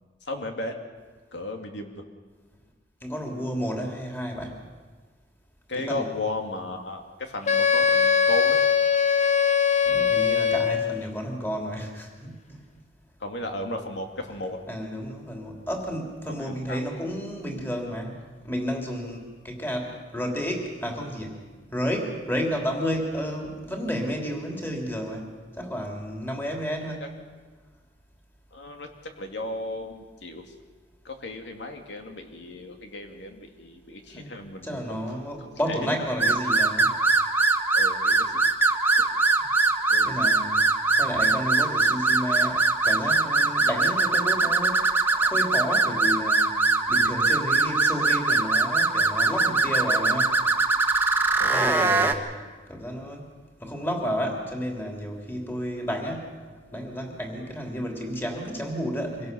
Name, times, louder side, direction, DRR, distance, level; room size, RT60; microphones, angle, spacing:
voice 1, 0.3-0.7 1.3-2.0 5.7-8.6 13.2-14.6 16.4-16.8 27.0-27.1 28.5-30.4 31.0-35.0 35.7-36.0 37.7-38.4 39.0-39.1 39.9-40.1 51.4-51.6 57.4-57.5, left 1 dB, 85° left, 4 dB, 2.5 m, -35 dB
voice 2, 3.0-4.6 5.7-6.2 9.8-12.6 14.7-21.4 21.7-27.1 34.1-34.3 34.6-36.9 40.0-40.7 41.0-46.6 46.9-50.4 51.5-52.3 52.7-53.3 53.6-56.4 56.7-59.3, equal, 10° left, 1 dB, 3.3 m, -31 dB
Wind instrument woodwind instrument, 7.5-11.0, left 7 dB, 40° left, 0.9 m, -21 dB
sound 1, 36.2-52.1, right 3 dB, 10° right, 1.4 m, -22 dB
25.0 x 17.0 x 6.9 m, 1.4 s
head